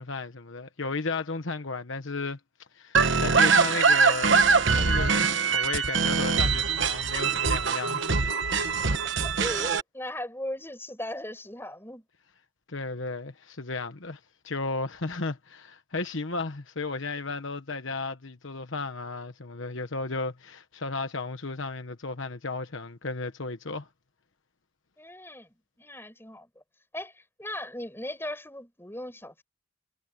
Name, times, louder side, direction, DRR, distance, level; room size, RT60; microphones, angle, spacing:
voice 1, 0.0-4.4 4.7-8.0 12.7-23.9, left 3 dB, 65° left, 1.2 m, -34 dB
sound 1, 2.9-9.8, right 5 dB, 60° right, 1.2 m, -23 dB
voice 2, 8.5-12.0 25.0-26.5 26.9-29.4, left 1 dB, 10° left, 5.5 m, -38 dB
head